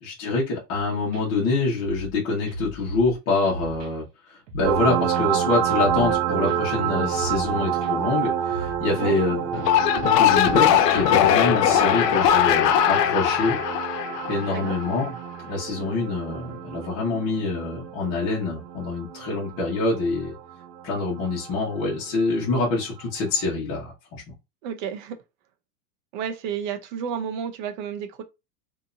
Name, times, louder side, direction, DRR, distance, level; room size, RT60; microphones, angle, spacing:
voice 1, 0.0-9.6 10.1-13.6 14.3-15.1 15.5-20.3 20.8-24.3, left 3 dB, 30° left, 1.2 m, -26 dB
sound 1, 1.1-1.2 1.8-2.2 2.5-3.2 3.5-3.9 4.5-4.8 5.1-5.2 5.8-6.2 6.5-6.6 7.1-7.5 7.8-7.9 8.5-8.8 9.1-9.3, equal, 55° right, 1.6 m, -37 dB
sound 2, 4.6-21.8 23.4-23.5, right 9 dB, 75° right, 0.8 m, -29 dB
sound 3, 9.5-14.9, left 10 dB, 80° left, 0.7 m, -20 dB
voice 2, 24.6-25.2 26.1-28.2, right 7 dB, 30° right, 0.5 m, -31 dB
3.6 x 2.8 x 2.6 m
supercardioid pair, 165°, 48 cm